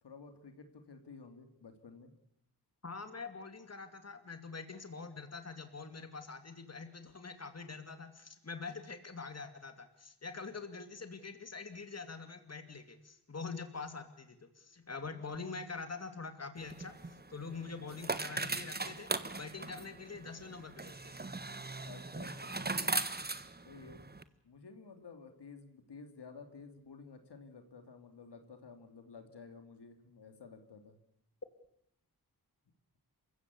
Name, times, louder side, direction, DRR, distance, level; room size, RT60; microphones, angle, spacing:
voice 1, 0.0-2.1 21.8-23.1 23.7-24.0 24.4-31.0, left 4 dB, 90° left, 7 dB, 2.9 m, -53 dB
voice 2, 2.8-16.9 17.3-21.1, left 4 dB, 40° left, 8 dB, 2.6 m, -45 dB
sound 1, 16.6-24.2, right 3 dB, 25° right, 1.4 m, -39 dB
27.5 x 16.0 x 8.4 m, 0.77 s
wide cardioid pair, 75°, 39 cm